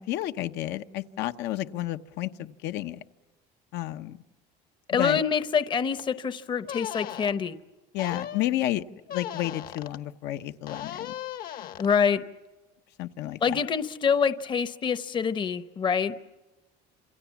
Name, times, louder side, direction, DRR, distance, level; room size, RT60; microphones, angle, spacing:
voice 1, 0.0-3.0 3.7-4.2 4.9-5.2 7.9-8.8 9.1-11.1 13.0-13.6, left 14 dB, 70° left, 9 dB, 1.0 m, -31 dB
voice 2, 4.9-7.5 11.8-12.2 13.4-16.1, left 6 dB, 25° left, 12 dB, 0.9 m, -26 dB
sound 1, 6.0-6.1 6.7-7.3 8.0-8.5 9.1-10.0 10.7-11.9, left 11 dB, 55° left, 1.3 m, -37 dB
28.5 x 27.5 x 7.2 m, 1.2 s
cardioid pair, 155°, 18 cm